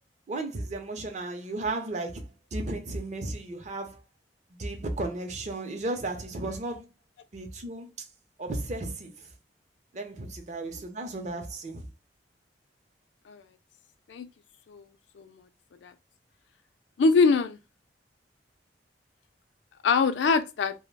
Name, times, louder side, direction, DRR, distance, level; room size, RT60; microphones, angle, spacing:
voice 1, 0.3-4.0 4.6-6.9 7.3-8.1 8.4-9.3 9.9-11.8, right 2 dB, 40° right, 0.6 m, -34 dB
voice 2, 17.0-17.6 19.8-20.7, left 4 dB, 85° left, 0.4 m, -23 dB
2.3 x 2.1 x 3.2 m
head